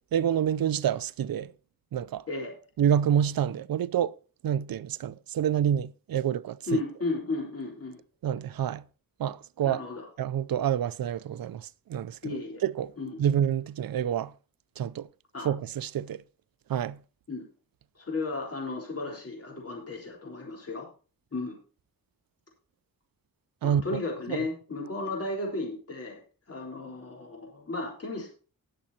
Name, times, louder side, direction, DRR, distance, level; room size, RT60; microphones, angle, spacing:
voice 1, 0.1-1.5 1.9-2.2 2.8-4.1 4.4-6.8 8.2-8.8 9.2-9.8 10.2-12.9 13.2-14.3 14.8-15.1 15.4-16.2 16.7-17.0 23.6-24.0 24.3-24.4, right 9 dB, 75° right, 0.5 m, -28 dB
voice 2, 6.7-8.0 9.6-10.1 12.2-12.6 13.0-13.3 15.3-15.5 17.3-17.4 18.0-20.9 21.3-21.6 23.6-26.2 26.5-28.3, left 3 dB, 40° left, 3.9 m, -34 dB
19.5 x 7.4 x 2.8 m
wide cardioid pair, 105°, 35 cm